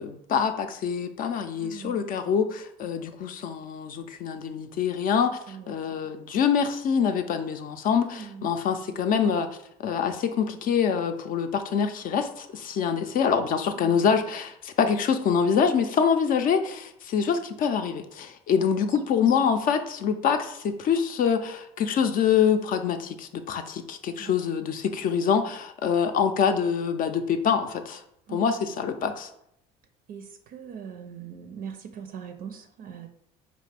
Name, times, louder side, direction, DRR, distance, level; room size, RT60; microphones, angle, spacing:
voice 1, 0.0-9.5 9.8-28.0 28.3-29.3, left 7 dB, 55° left, 8 dB, 0.5 m, -25 dB
voice 2, 1.6-2.3 5.5-6.0 8.2-8.5 13.8-14.1 18.7-18.9 24.2-24.4 28.3-28.4 30.1-33.1, right 7 dB, 55° right, 6 dB, 0.4 m, -41 dB
4.7 x 2.5 x 3.3 m, 0.75 s
supercardioid pair, 90°, 18 cm